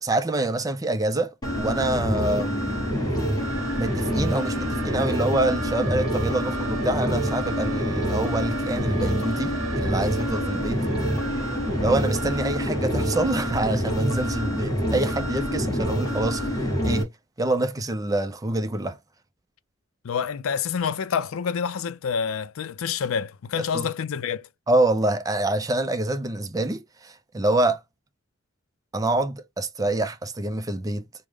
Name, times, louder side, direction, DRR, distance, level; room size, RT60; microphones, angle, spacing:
voice 1, 0.0-3.0 3.7-10.8 11.8-17.1 17.4-19.0 23.6-23.9 24.7-27.8 28.9-31.0, right 2 dB, 15° right, 0.4 m, -26 dB
sound 1, 1.4-17.0, equal, 20° left, 1.3 m, -26 dB
Siren, 1.6-1.7 2.0-14.0, right 5 dB, 80° right, 0.7 m, -38 dB
voice 2, 20.0-24.5, left 7 dB, 85° left, 0.4 m, -27 dB
4.8 x 2.1 x 3.5 m
head